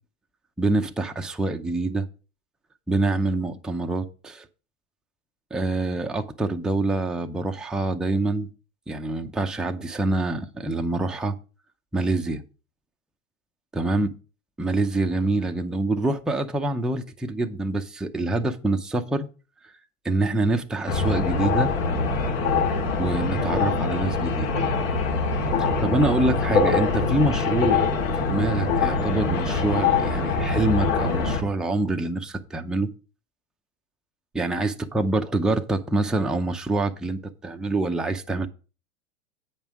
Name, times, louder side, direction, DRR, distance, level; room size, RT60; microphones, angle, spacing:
voice 1, 0.6-2.1 2.9-4.4 5.5-8.5 8.9-11.4 11.9-12.4 13.7-14.1 14.6-19.3 20.0-21.7 23.0-24.6 25.6-27.9 28.2-32.9 34.3-38.5, right 2 dB, ahead, 0.6 m, -26 dB
sound 1, 20.9-31.4, left 4 dB, 65° left, 2.4 m, -23 dB
8.7 x 5.5 x 6.0 m
hypercardioid pair, 110°, 43 cm